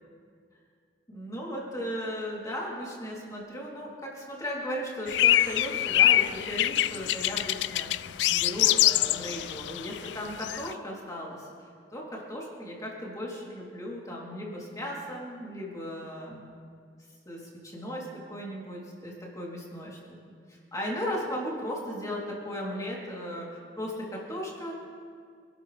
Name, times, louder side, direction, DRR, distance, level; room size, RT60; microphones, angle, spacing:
voice 1, 1.1-7.9 8.3-11.5 11.9-16.5 17.3-20.0 20.5-24.7, equal, 20° left, -4 dB, 3.5 m, -36 dB
sound 1, 5.1-10.7, left 13 dB, 80° left, 0.3 m, -25 dB
26.5 x 12.5 x 3.5 m, 2.1 s
head